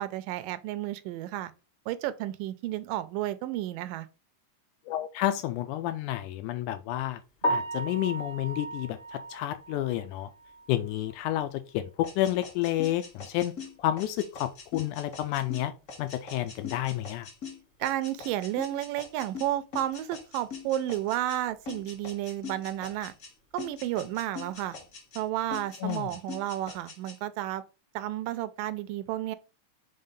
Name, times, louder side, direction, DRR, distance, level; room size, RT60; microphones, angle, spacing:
voice 1, 0.0-1.5 1.9-4.1 17.8-23.1 23.5-24.8 25.2-27.6 27.9-29.4, right 13 dB, 85° right, 2.3 m, -32 dB
voice 2, 4.9-7.2 7.5-10.3 10.7-13.5 13.8-15.7 16.0-17.3 25.8-26.1, left 13 dB, 80° left, 1.8 m, -30 dB
Piano, 7.4-11.4 11.7-11.9 12.4-12.5 12.8-12.9 16.0-16.1 24.6-24.8, right 1 dB, 30° left, 1.0 m, -35 dB
sound 1, 12.0-21.4 21.7-23.3 23.6-25.2 25.5-27.2, left 6 dB, 50° left, 0.9 m, -43 dB
5.5 x 3.9 x 5.2 m
omnidirectional pair, 3.8 m